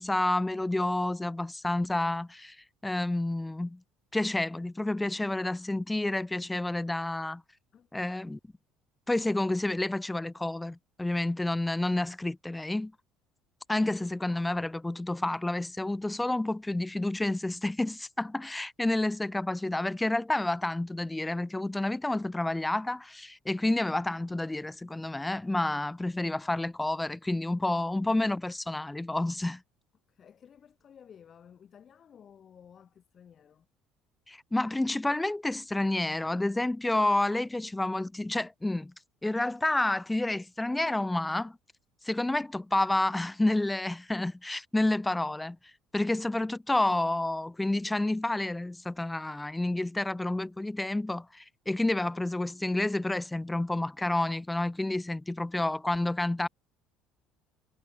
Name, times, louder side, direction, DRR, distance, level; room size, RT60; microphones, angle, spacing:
voice 1, 0.0-2.6 2.8-3.8 4.1-7.4 7.9-8.4 9.1-12.9 13.7-29.6 34.3-38.9 39.2-41.6 42.0-45.6 45.9-56.5, left 2 dB, 10° left, 0.7 m, -29 dB
voice 2, 7.7-8.3 13.7-14.1 30.1-33.7, left 8 dB, 45° left, 3.9 m, -54 dB
hypercardioid pair, 60°, 0 cm